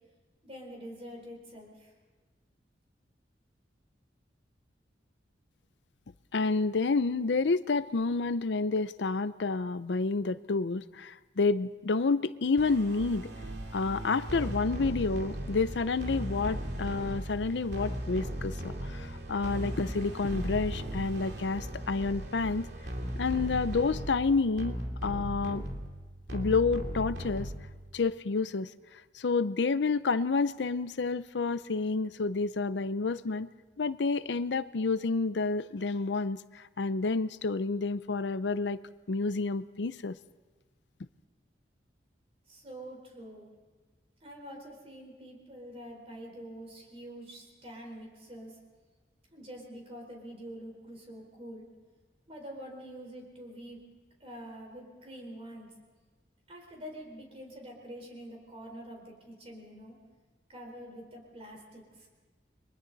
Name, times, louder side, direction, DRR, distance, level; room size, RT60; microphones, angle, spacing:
voice 1, 0.4-1.9 42.5-43.5 44.2-48.6 49.3-51.7 52.3-53.8 54.2-55.7 56.5-60.0 60.5-62.1, equal, 35° right, 0 dB, 4.2 m, -46 dB
voice 2, 6.3-13.3 13.7-22.7 23.2-24.8 25.0-25.6 26.3-27.5 27.9-33.5 33.8-38.8 39.1-40.1, left 4 dB, 80° left, 15 dB, 0.6 m, -29 dB
sound 1, 12.6-28.0, right 1 dB, 70° right, 2.6 m, -37 dB
30.0 x 23.0 x 4.0 m, 1.4 s
head